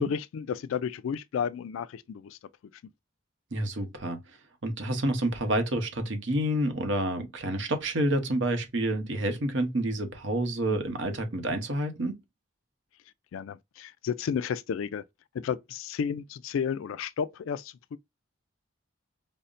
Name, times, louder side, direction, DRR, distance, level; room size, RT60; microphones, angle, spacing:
voice 1, 0.0-2.4 13.3-15.0 15.3-18.0, left 7 dB, 80° left, 0.3 m, -32 dB
voice 2, 3.5-4.2 4.6-12.1, right 1 dB, 65° right, 0.9 m, -28 dB
5.3 x 2.1 x 2.5 m
head